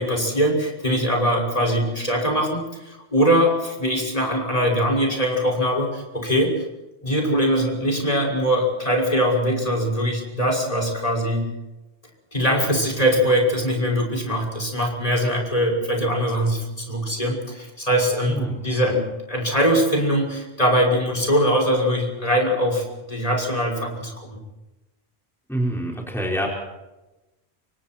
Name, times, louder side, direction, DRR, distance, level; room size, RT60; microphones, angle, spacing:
voice 1, 0.0-6.6 7.0-11.4 12.3-19.0 19.3-24.4, equal, 35° left, 1 dB, 6.2 m, -22 dB
voice 2, 18.2-19.0 25.5-26.5, right 1 dB, ahead, -2 dB, 5.0 m, -27 dB
29.0 x 25.5 x 4.6 m, 1.0 s
omnidirectional pair, 1.1 m